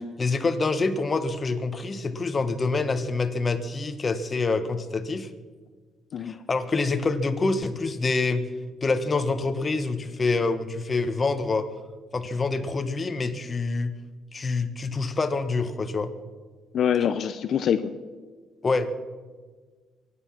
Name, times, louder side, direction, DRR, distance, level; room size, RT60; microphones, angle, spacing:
voice 1, 0.2-5.3 6.2-8.5 8.8-11.7 12.1-13.9 14.3-16.1 18.6-18.9, left 3 dB, 35° left, 8 dB, 1.4 m, -26 dB
voice 2, 16.7-17.8, left 8 dB, 65° left, 9 dB, 0.7 m, -24 dB
23.5 x 9.9 x 6.0 m, 1.4 s
cardioid pair, 90°, 0 cm